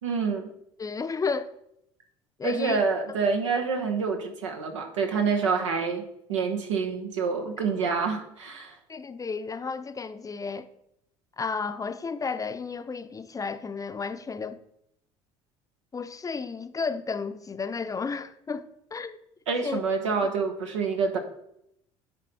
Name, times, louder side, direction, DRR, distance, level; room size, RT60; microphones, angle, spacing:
voice 1, 0.0-0.4 2.4-6.0 6.3-8.8 19.5-21.2, right 5 dB, 90° right, 1.1 m, -27 dB
voice 2, 0.8-1.5 2.4-2.8 8.9-10.7 11.4-14.6 15.9-19.2 19.6-19.8, left 5 dB, 20° left, 0.6 m, -32 dB
10.0 x 3.9 x 4.2 m
hypercardioid pair, 70°, 15 cm